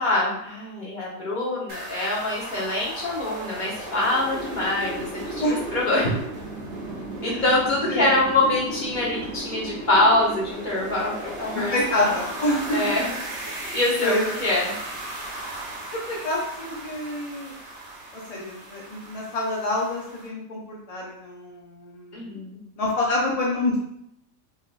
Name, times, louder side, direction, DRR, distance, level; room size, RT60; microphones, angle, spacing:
voice 1, 0.0-6.1 7.2-12.1 12.7-13.1 13.7-14.7 22.1-22.6, left 2 dB, 30° left, -6 dB, 1.1 m, -24 dB
sound 1, 1.7-20.3, right 2 dB, 50° right, 0.7 m, -36 dB
voice 2, 11.5-13.0 14.0-14.3 15.9-17.5 18.1-22.4 22.8-23.8, left 1 dB, 50° left, -4 dB, 0.4 m, -27 dB
4.0 x 3.6 x 2.6 m, 0.74 s
omnidirectional pair, 1.8 m